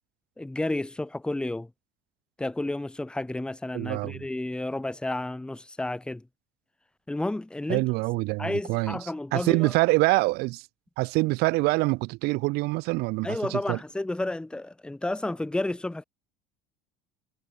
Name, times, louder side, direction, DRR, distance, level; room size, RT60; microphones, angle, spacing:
voice 1, 0.4-1.7 2.4-6.3 7.1-7.8 8.4-9.7 13.2-16.0, left 2 dB, 5° left, 0.6 m, -31 dB
voice 2, 3.7-4.2 7.7-9.0 9.3-10.7 11.0-13.8, right 23 dB, 55° right, 0.6 m, -25 dB
hypercardioid pair, 75°, 19 cm